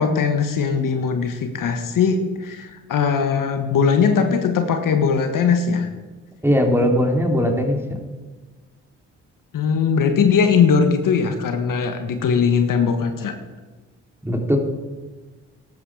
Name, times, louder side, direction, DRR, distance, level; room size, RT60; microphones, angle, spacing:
voice 1, 0.0-5.9 9.5-13.3, left 6 dB, 60° left, 7 dB, 1.6 m, -20 dB
voice 2, 6.4-7.8 14.2-14.6, equal, 5° right, 2 dB, 3.2 m, -19 dB
14.0 x 12.0 x 4.9 m, 1.3 s
hypercardioid pair, 50°, 36 cm